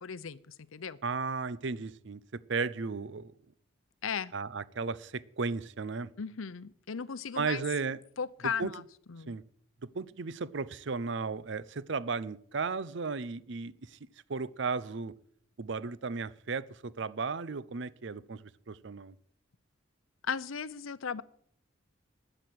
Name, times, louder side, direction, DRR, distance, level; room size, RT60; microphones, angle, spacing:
voice 1, 0.0-1.0 4.0-4.3 6.2-7.6 8.2-8.8 9.1-9.4 20.2-21.2, left 6 dB, 85° left, 0.7 m, -36 dB
voice 2, 1.0-3.3 4.3-6.1 7.4-8.0 8.4-8.7 9.3-9.4 9.9-14.0 14.3-15.1 15.6-19.1, right 4 dB, 60° right, 0.6 m, -35 dB
12.5 x 8.8 x 7.8 m
head